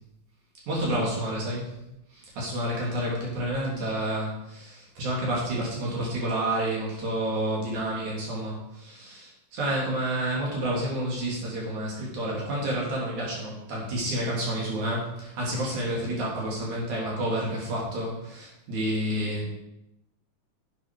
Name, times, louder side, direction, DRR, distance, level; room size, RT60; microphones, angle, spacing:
voice 1, 0.7-1.7 2.1-19.5, right 1 dB, 70° right, -4 dB, 4.6 m, -29 dB
10.5 x 8.6 x 4.9 m, 0.84 s
omnidirectional pair, 3.6 m